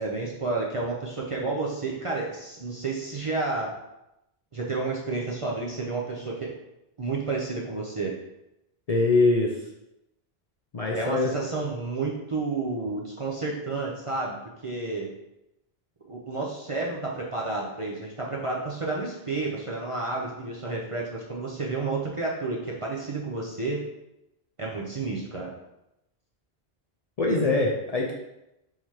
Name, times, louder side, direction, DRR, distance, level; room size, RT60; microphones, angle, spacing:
voice 1, 0.0-3.8 4.5-6.5 7.0-8.2 10.9-14.4 14.6-15.1 16.0-23.8 24.6-25.5, right 3 dB, 40° right, -3 dB, 0.5 m, -30 dB
voice 2, 8.9-9.5 10.7-11.3 27.2-28.1, left 3 dB, 50° left, -1 dB, 0.5 m, -23 dB
3.8 x 2.8 x 4.6 m, 0.88 s
omnidirectional pair, 1.1 m